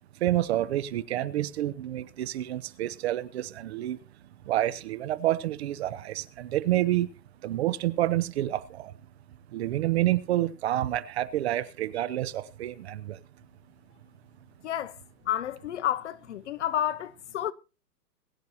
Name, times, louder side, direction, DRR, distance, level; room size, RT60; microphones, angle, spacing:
voice 1, 0.2-4.0 4.5-7.1 7.4-8.9 9.5-13.2, right 14 dB, 40° right, 0.9 m, -28 dB
voice 2, 14.6-15.0 15.3-17.5, left 11 dB, 45° left, 0.7 m, -30 dB
22.0 x 9.3 x 2.9 m
hypercardioid pair, 140°, 49 cm